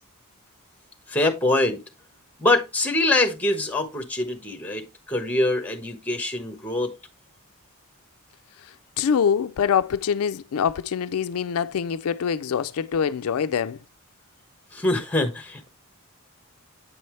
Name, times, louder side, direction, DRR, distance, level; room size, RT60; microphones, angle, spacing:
voice 1, 1.1-1.8 2.4-6.9 14.7-15.7, left 2 dB, 5° left, 1.2 m, -24 dB
voice 2, 8.6-13.8, left 7 dB, 70° left, 0.4 m, -25 dB
8.3 x 5.5 x 3.2 m
head